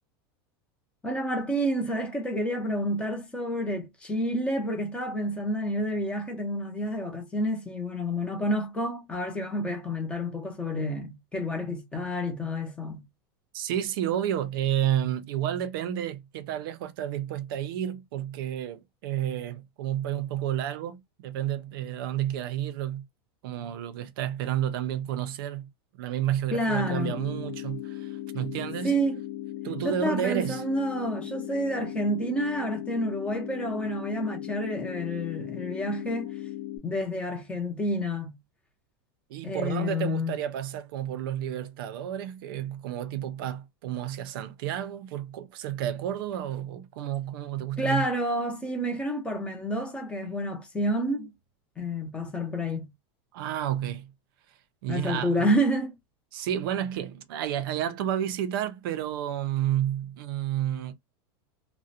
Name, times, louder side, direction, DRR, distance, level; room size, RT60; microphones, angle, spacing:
voice 1, 1.0-13.0 26.5-27.2 28.8-29.2 29.8-36.3 36.8-38.3 39.4-40.4 47.8-51.3 51.8-52.9 54.9-55.9, equal, 10° left, 0.6 m, -29 dB
voice 2, 13.5-23.1 23.4-28.9 29.6-30.6 39.3-48.1 53.3-54.1 54.5-55.5 56.3-60.9, right 11 dB, 60° right, 0.4 m, -31 dB
sound 1, 26.8-36.8, left 13 dB, 60° left, 0.7 m, -37 dB
2.4 x 2.0 x 2.6 m
supercardioid pair, 160°, 13 cm